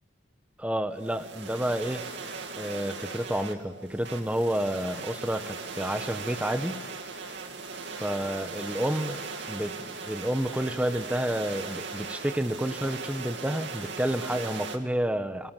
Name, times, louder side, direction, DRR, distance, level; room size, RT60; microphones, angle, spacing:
voice 1, 0.6-2.1 2.5-6.9 8.0-15.5, right 1 dB, 5° right, 10 dB, 1.1 m, -30 dB
sound 1, 1.0-14.8, right 4 dB, 70° right, 2.4 m, -38 dB
29.5 x 22.5 x 7.6 m, 1.2 s
head